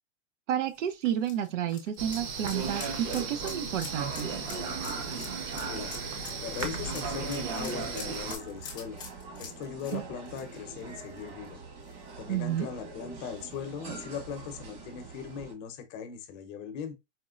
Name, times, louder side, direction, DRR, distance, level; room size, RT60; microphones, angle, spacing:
voice 1, 0.5-4.3 9.9-10.0 12.3-12.7, right 10 dB, 85° right, 0.6 m, -31 dB
sound 1, 0.7-11.5 11.8-11.9 13.4-13.5, left 6 dB, 15° left, 0.3 m, -46 dB
sound 2, 2.0-8.4, right 4 dB, 40° right, 0.7 m, -35 dB
sound 3, 3.8-15.5, right 4 dB, 60° right, 1.6 m, -45 dB
voice 2, 5.6-5.9 6.4-9.0 9.4-11.6 12.2-17.0, left 7 dB, 35° left, 0.7 m, -39 dB
4.3 x 2.0 x 2.4 m
supercardioid pair, 145°, 36 cm